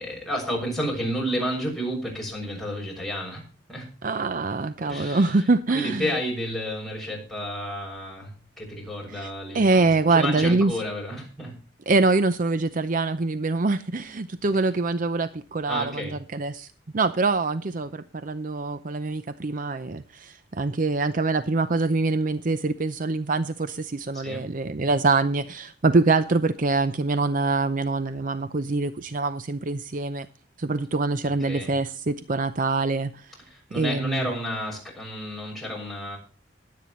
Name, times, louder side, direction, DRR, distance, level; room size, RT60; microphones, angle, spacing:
voice 1, 0.0-3.9 4.8-5.5 5.7-11.6 15.6-16.2 24.1-24.4 31.4-31.7 33.5-36.2, equal, ahead, -2 dB, 6.8 m, -31 dB
voice 2, 4.0-6.1 9.1-9.3 9.5-10.7 11.9-16.7 16.9-30.3 30.6-33.3 33.8-34.3, right 3 dB, 50° right, 12 dB, 0.6 m, -24 dB
21.0 x 8.7 x 3.1 m, 0.39 s
head